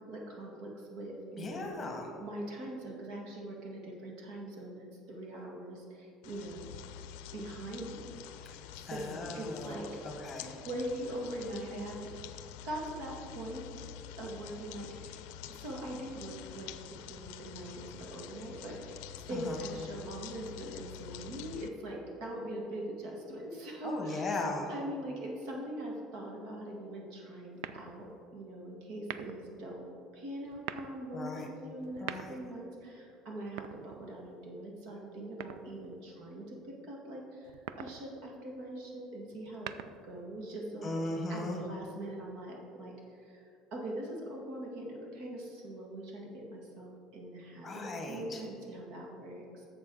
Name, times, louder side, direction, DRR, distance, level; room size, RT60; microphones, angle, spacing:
voice 1, 0.0-1.7 2.2-6.7 7.3-9.9 10.6-12.1 12.6-13.7 14.2-15.2 15.5-16.7 17.1-19.0 19.3-24.4 24.7-39.8 40.0-41.0 41.3-43.4 43.7-49.7, right 1 dB, 60° right, -1 dB, 1.9 m, -42 dB
voice 2, 1.4-2.1 8.9-10.6 19.3-19.6 23.8-24.7 31.1-31.5 32.0-32.4 40.8-41.6 47.6-48.4, left 2 dB, 15° left, 2 dB, 1.4 m, -38 dB
sound 1, 6.2-21.7, left 10 dB, 85° left, 0.5 m, -47 dB
sound 2, 27.6-28.2 29.0-29.5 30.4-31.0 31.8-32.6 33.4-34.3 35.4-36.0 37.4-38.0 39.3-40.2, right 10 dB, 80° right, 0.4 m, -44 dB
11.5 x 7.3 x 3.9 m, 2.5 s
cardioid pair, 170°, 0 cm